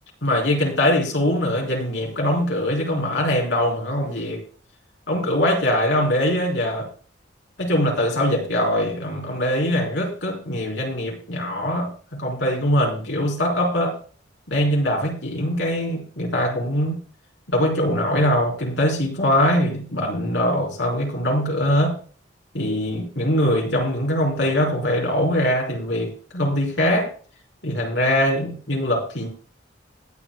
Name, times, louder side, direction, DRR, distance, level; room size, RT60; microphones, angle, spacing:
voice 1, 0.2-4.4 5.1-6.9 7.6-13.9 14.5-17.0 17.5-22.0 22.5-27.1 27.6-29.3, left 1 dB, 70° left, -1 dB, 4.4 m, -22 dB
21.0 x 8.2 x 2.3 m, 0.42 s
head